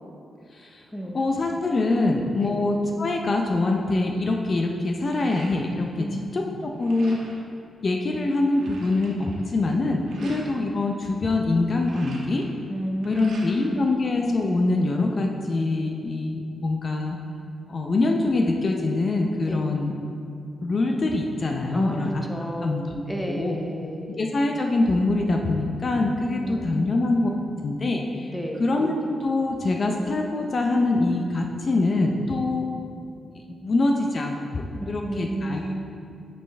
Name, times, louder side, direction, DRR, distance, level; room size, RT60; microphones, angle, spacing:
voice 1, 0.5-0.9 1.1-7.2 7.8-12.5 13.0-17.2 17.7-19.9 20.6-22.2 22.6-23.0 23.3-23.6 24.2-27.3 27.6-28.3 28.6-28.9 29.2-32.7 33.3-35.7, left 2 dB, 45° left, 2 dB, 0.5 m, -24 dB
sound 1, 4.8-6.0 6.3-7.5 8.0-8.1 8.3-10.5 11.5-13.8 14.1-15.0, right 2 dB, 80° right, 1.2 m, -46 dB
voice 2, 6.0-6.3 10.2-10.4 12.7-13.9 19.5-19.6 21.7-22.8 23.1-24.2 26.4-26.9 27.4-27.5 28.3-28.6 34.7-35.7, right 1 dB, 5° left, 1 dB, 0.8 m, -32 dB
8.6 x 5.4 x 3.4 m, 2.5 s
cardioid pair, 100°, 0 cm